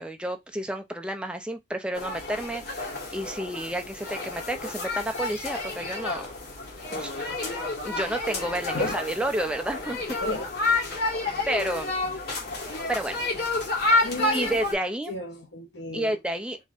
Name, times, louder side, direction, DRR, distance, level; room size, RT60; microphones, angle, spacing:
voice 1, 0.0-6.3 6.9-7.1 7.8-10.0 10.9-11.1 11.5-11.9 12.9-13.3 14.3-15.1 15.9-16.6, right 1 dB, 5° right, 0.7 m, -30 dB
sound 1, 1.9-14.7, left 2 dB, 60° left, 2.1 m, -30 dB
voice 2, 8.7-9.1 10.2-10.7 14.0-14.6 15.1-16.2, left 2 dB, 80° left, 1.1 m, -34 dB
4.0 x 3.1 x 3.6 m
head